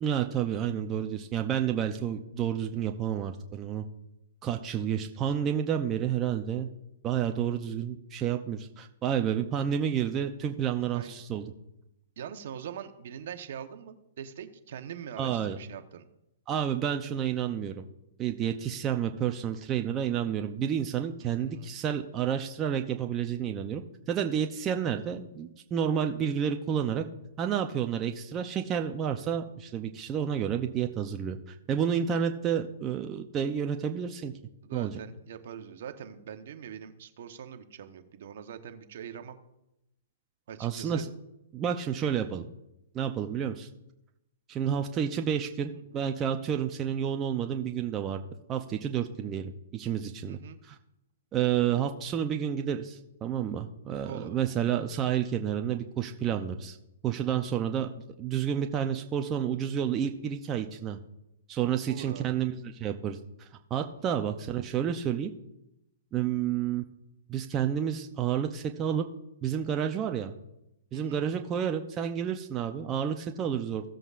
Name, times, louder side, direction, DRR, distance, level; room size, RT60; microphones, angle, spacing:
voice 1, 0.0-3.8 4.4-6.7 7.0-11.4 15.2-15.6 16.5-17.8 18.2-27.0 27.4-34.3 34.7-35.0 40.6-41.1 41.5-42.4 42.9-43.7 44.5-48.2 48.5-50.4 50.6-50.8 51.3-56.8 57.0-57.9 58.2-61.0 61.5-65.3 66.1-66.8 67.3-69.1 69.4-70.3 70.9-73.8, right 9 dB, 20° right, 5 dB, 0.6 m, -30 dB
voice 2, 10.8-11.1 12.2-16.0 21.2-21.7 34.6-39.4 40.5-41.0 45.7-46.0 50.3-50.6 54.0-54.4 61.9-62.4 70.9-71.2, right 8 dB, 60° right, 8 dB, 1.0 m, -43 dB
16.5 x 7.7 x 2.5 m, 0.87 s
hypercardioid pair, 145°, 0 cm